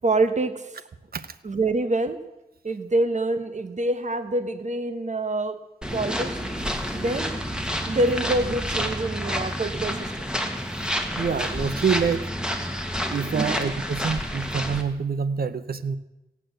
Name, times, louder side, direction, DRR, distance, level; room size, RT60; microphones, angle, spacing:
voice 1, 0.0-0.7 1.4-2.2 2.6-5.6 5.9-6.4 6.9-7.4 7.9-10.3 13.2-13.6, right 2 dB, 45° right, 10 dB, 1.2 m, -26 dB
sound 1, 5.8-14.8, equal, 5° right, 2.0 m, -29 dB
voice 2, 11.2-12.3 13.1-16.0, right 6 dB, 70° right, 13 dB, 0.9 m, -26 dB
17.0 x 8.6 x 7.8 m, 0.98 s
wide cardioid pair, 60°, 16 cm